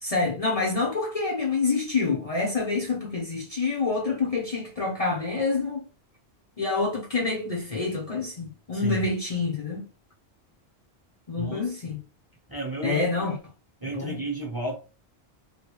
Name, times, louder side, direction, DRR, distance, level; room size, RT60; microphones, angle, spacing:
voice 1, 0.0-5.8 6.6-9.8 11.3-12.0 12.8-13.4 13.8-14.2, left 4 dB, 35° left, 0.8 m, -27 dB
voice 2, 8.7-9.1 11.4-11.6 12.5-13.0 13.8-14.7, right 2 dB, 20° right, 0.9 m, -32 dB
3.1 x 2.6 x 3.0 m
omnidirectional pair, 1.1 m